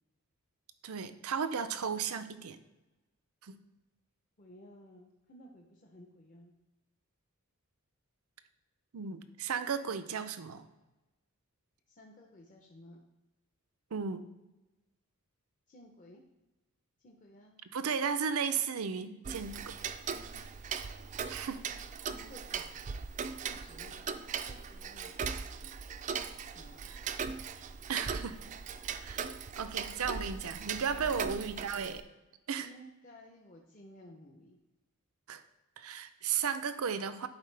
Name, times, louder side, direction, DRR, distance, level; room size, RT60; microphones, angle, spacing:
voice 1, 0.8-2.6 3.4-3.6 8.9-10.6 13.9-14.2 17.7-19.7 21.3-21.6 26.9-27.1 27.9-28.4 29.0-29.3 29.6-32.0 32.5-32.7 35.3-35.4 35.8-37.3, right 6 dB, 85° right, 12 dB, 0.5 m, -35 dB
voice 2, 4.4-6.5 11.9-13.0 15.7-16.2 17.0-17.6 20.3-20.5 21.2-21.4 22.1-22.7 23.4-24.0 24.4-25.1 26.5-26.9 31.0-31.2 32.6-34.6, equal, 35° left, 0 dB, 0.7 m, -55 dB
Tick-tock, 19.2-32.0, right 6 dB, 35° right, 0.3 m, -39 dB
11.0 x 4.5 x 3.3 m, 1.1 s
head